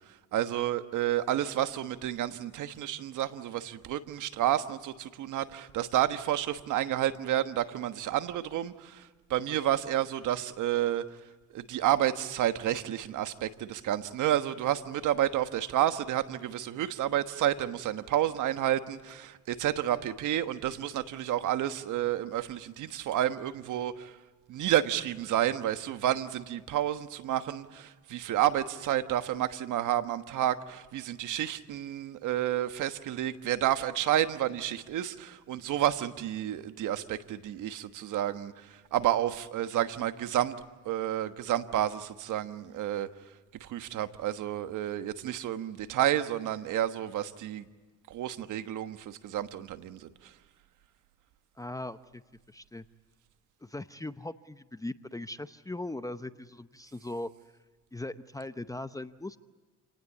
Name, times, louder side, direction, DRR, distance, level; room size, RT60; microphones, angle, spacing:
voice 1, 0.1-11.2 11.5-24.2 24.5-40.6 40.8-43.1 43.6-47.7 48.1-50.3, right 12 dB, 80° right, 11 dB, 1.4 m, -30 dB
voice 2, 51.6-52.2 52.5-52.9 53.6-57.3 57.9-59.4, left 2 dB, 10° left, 12 dB, 0.8 m, -39 dB
29.0 x 19.0 x 8.4 m, 1.4 s
cardioid pair, 90°, 30 cm